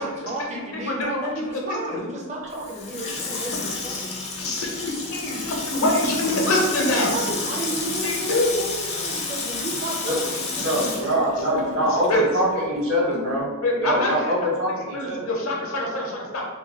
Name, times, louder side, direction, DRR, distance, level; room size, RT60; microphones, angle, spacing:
voice 1, 0.0-4.1 6.2-11.9, right 2 dB, 30° right, -1 dB, 0.5 m, -33 dB
voice 2, 1.5-2.0 3.9-4.1 4.4-7.1 7.8-8.5 10.5-10.6 12.1-12.2 13.6-14.3 14.9-16.5, left 2 dB, 70° left, -1 dB, 0.6 m, -25 dB
Water tap faucet / Sink (filling or washing), 2.5-12.2 12.5-12.6, left 3 dB, 30° left, 0.4 m, -31 dB
sound 1, 4.9-10.2, right 4 dB, 85° right, 0.7 m, -45 dB
voice 3, 10.6-13.5 13.8-15.3, equal, 65° right, -5 dB, 1.1 m, -24 dB
2.9 x 2.2 x 2.8 m, 1.3 s
head